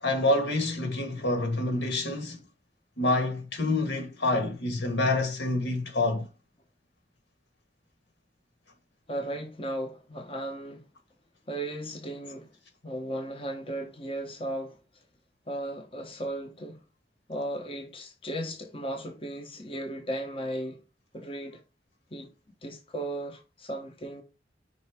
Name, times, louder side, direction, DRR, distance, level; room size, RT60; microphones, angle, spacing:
voice 1, 0.0-2.4 3.0-6.3, left 2 dB, 75° left, 1.8 m, -27 dB
voice 2, 9.1-10.8 11.5-12.5 12.8-14.8 15.5-16.8 17.3-20.8 21.1-21.6 22.1-22.3 22.6-24.2, right 1 dB, 30° left, 1.1 m, -36 dB
5.6 x 4.0 x 4.9 m
head